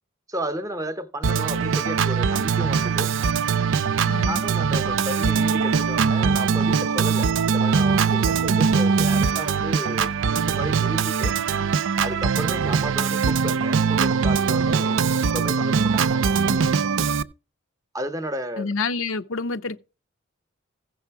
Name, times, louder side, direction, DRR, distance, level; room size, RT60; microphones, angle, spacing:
voice 1, 0.3-3.1 4.3-11.3 12.0-16.3 17.9-18.7, right 1 dB, 15° right, 0.7 m, -33 dB
Organ, 1.2-17.2, right 5 dB, 70° right, 0.5 m, -22 dB
voice 2, 4.1-4.4 18.6-19.8, left 4 dB, 80° left, 0.7 m, -28 dB
15.5 x 6.3 x 4.7 m
head